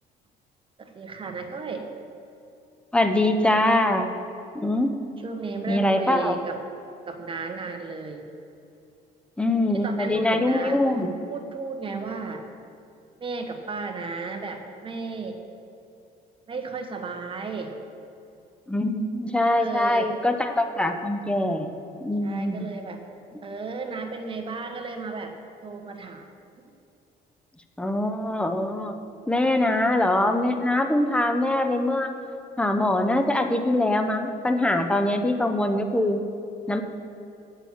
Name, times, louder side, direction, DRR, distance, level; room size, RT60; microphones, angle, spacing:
voice 1, 0.8-1.8 5.2-6.6 7.1-8.2 9.7-10.8 11.3-12.4 13.2-15.4 16.5-17.7 19.5-20.1 22.2-23.0 23.4-25.3 25.6-26.3, right 4 dB, 30° right, 4 dB, 1.2 m, -34 dB
voice 2, 2.9-4.1 4.5-5.0 5.7-6.4 9.4-11.1 18.7-21.7 22.0-22.7 27.8-29.0 29.3-32.1 32.6-36.2 36.7-36.8, left 1 dB, 5° left, 6 dB, 0.8 m, -23 dB
8.8 x 7.0 x 7.4 m, 2.7 s
cardioid pair, 110°, 17 cm